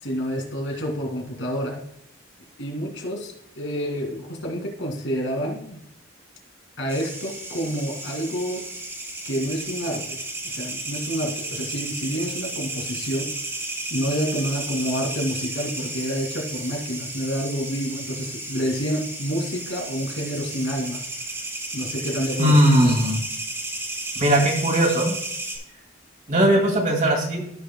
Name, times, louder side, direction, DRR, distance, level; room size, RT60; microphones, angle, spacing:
voice 1, 0.0-1.8 2.6-5.8 6.8-8.7 9.2-10.2 10.4-13.3 13.9-21.0 21.7-22.9, equal, 70° left, 1 dB, 2.5 m, -28 dB
sound 1, 6.9-25.6, right 2 dB, 15° right, 1.7 m, -33 dB
voice 2, 22.4-23.2 24.2-25.1 26.3-27.4, equal, 40° right, 0 dB, 2.3 m, -19 dB
14.5 x 6.3 x 2.2 m, 0.77 s
head